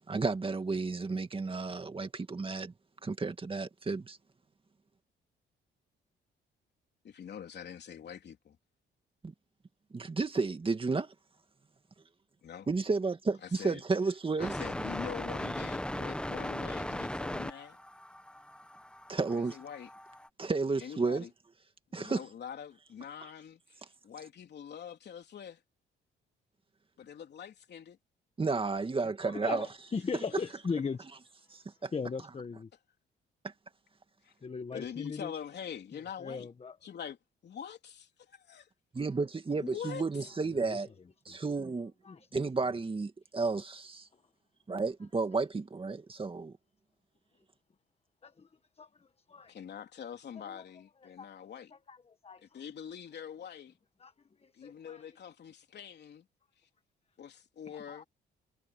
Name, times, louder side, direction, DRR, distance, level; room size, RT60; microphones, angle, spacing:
voice 1, 0.0-2.7 3.0-4.2 9.2-9.3 9.9-11.1 12.7-14.6 19.1-19.6 20.4-21.3 21.9-22.2 28.4-29.7 31.5-31.9 38.9-40.9 41.3-41.9 42.3-44.1 44.7-46.5, right 4 dB, 25° right, 2.2 m, -32 dB
voice 2, 7.0-8.6 12.4-12.7 13.4-13.8 14.4-17.8 19.3-19.9 20.8-21.3 21.9-25.6 27.0-28.0 34.2-34.3 34.7-36.5 36.8-37.2 37.4-38.7 39.6-40.3 49.5-51.7 52.5-53.7 54.5-56.3 57.2-58.1, left 8 dB, 60° left, 3.5 m, -44 dB
sound 1, 14.4-20.3, left 1 dB, 5° left, 1.3 m, -38 dB
voice 3, 29.0-31.1 31.9-32.7 34.4-35.3 35.9-36.8 40.5-40.8 41.3-41.4 42.0-42.3 42.6-42.7 44.1-44.2 48.2-49.5 50.3-50.6 51.0-51.3 51.7-52.6 54.0-54.1 54.4-55.2 57.6-58.0, left 5 dB, 30° left, 1.3 m, -40 dB
cardioid pair, 90°, 20 cm